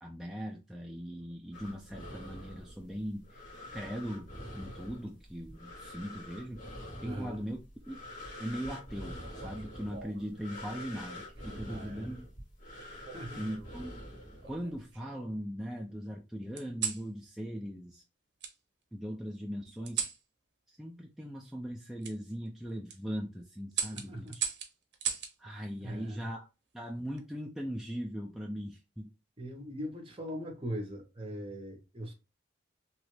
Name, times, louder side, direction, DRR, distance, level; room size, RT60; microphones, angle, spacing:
voice 1, 0.0-3.4 3.7-4.3 4.6-7.6 7.9-8.0 8.4-12.3 13.4-13.9 14.4-18.0 18.9-20.0 20.7-24.4 25.4-26.5 26.7-29.1, equal, ahead, 0.3 m, -40 dB
sound 1, 1.5-14.8, left 1 dB, 50° left, 1.7 m, -46 dB
voice 2, 7.0-7.4 11.7-12.1 13.1-13.4 23.9-24.3 25.8-26.2 29.4-32.1, equal, 30° right, 0.9 m, -40 dB
sound 2, 9.2-10.3 11.3-11.8 13.0-13.8 14.4-15.3 16.6-17.1 18.4-18.5 19.8-20.2 22.0-22.2 22.7-23.0 23.7-25.3 26.8-27.2, right 6 dB, 65° right, 0.7 m, -38 dB
3.0 x 2.4 x 3.1 m
head